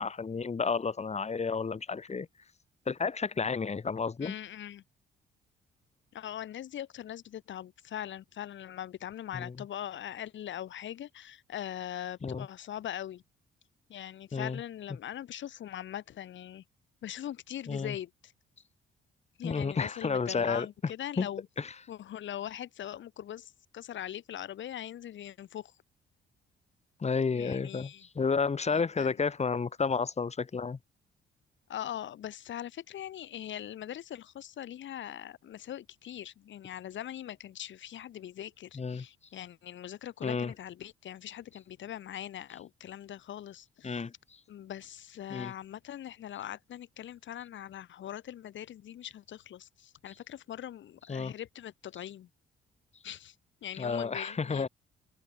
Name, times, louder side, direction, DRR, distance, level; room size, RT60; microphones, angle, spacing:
voice 1, 0.0-2.3 2.9-4.3 9.3-9.5 12.2-12.5 14.3-14.6 17.7-17.9 19.4-20.7 21.2-21.3 21.6-21.7 27.0-27.9 28.2-30.8 38.8-39.0 40.2-40.5 43.8-44.1 45.3-45.5 51.1-51.3 53.8-54.7, left 5 dB, 35° left, 4.6 m, -31 dB
voice 2, 4.2-4.8 6.1-13.2 13.9-16.6 17.0-18.3 19.4-21.5 21.9-25.7 27.3-28.1 28.7-29.2 31.7-44.0 44.5-52.3 53.0-53.3 53.6-54.7, left 11 dB, 70° left, 5.0 m, -41 dB
cardioid pair, 90°, 20 cm